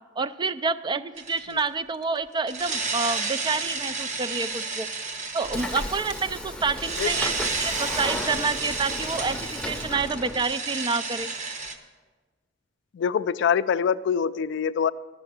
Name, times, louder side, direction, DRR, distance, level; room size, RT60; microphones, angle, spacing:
voice 1, 0.2-4.9 5.3-11.3, right 4 dB, 25° right, 13 dB, 0.3 m, -28 dB
sound 1, 1.2-1.6 2.5-11.8, right 4 dB, 40° right, 0.9 m, -32 dB
Train / Sliding door, 5.4-10.5, left 1 dB, 5° left, 0.7 m, -34 dB
voice 2, 12.9-14.9, left 7 dB, 65° left, 15 dB, 0.3 m, -24 dB
11.5 x 6.7 x 7.9 m, 1.4 s
head